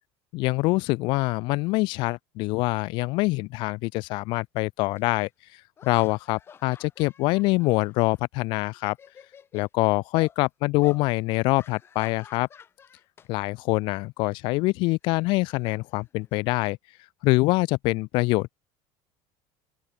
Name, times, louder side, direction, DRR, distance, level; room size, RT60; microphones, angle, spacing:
voice 1, 0.3-5.3 5.8-9.0 9.5-12.5 13.3-16.8 17.2-18.5, left 23 dB, 50° left, 0.4 m, -25 dB
sound 1, 5.0-5.1 5.8-8.4 8.7-9.7 10.1-10.4 10.8-11.0 11.6-13.3 13.6-13.9 15.0-16.5, left 7 dB, 20° left, 3.4 m, -49 dB
open air
cardioid pair, 175°, 11 cm